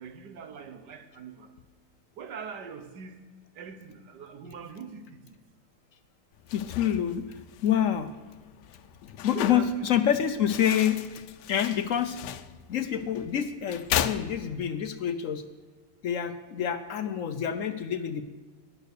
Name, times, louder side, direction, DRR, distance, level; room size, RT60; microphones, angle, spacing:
voice 1, 0.0-1.5 2.2-3.3 3.5-5.4 9.3-9.9, right 6 dB, 85° right, 10 dB, 1.7 m, -42 dB
sound 1, 6.3-14.9, left 10 dB, 85° left, 1.3 m, -36 dB
voice 2, 6.5-8.1 9.2-11.0 11.5-12.2 12.7-15.4 16.0-18.2, left 9 dB, 65° left, 10 dB, 0.9 m, -27 dB
13.0 x 10.5 x 6.6 m, 1.3 s
omnidirectional pair, 1.8 m